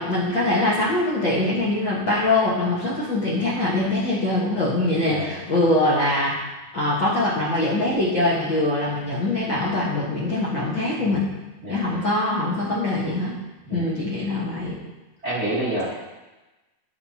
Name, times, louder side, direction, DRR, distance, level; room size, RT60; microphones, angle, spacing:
voice 1, 0.0-6.3 6.7-11.3 11.7-13.4 13.7-14.8, left 2 dB, 50° left, -8 dB, 1.5 m, -23 dB
voice 2, 5.0-5.4 11.0-11.2 11.6-11.8 13.7-13.9 15.2-15.9, right 1 dB, 55° right, -9 dB, 0.7 m, -28 dB
12.0 x 5.2 x 2.8 m, 1.1 s
omnidirectional pair, 3.7 m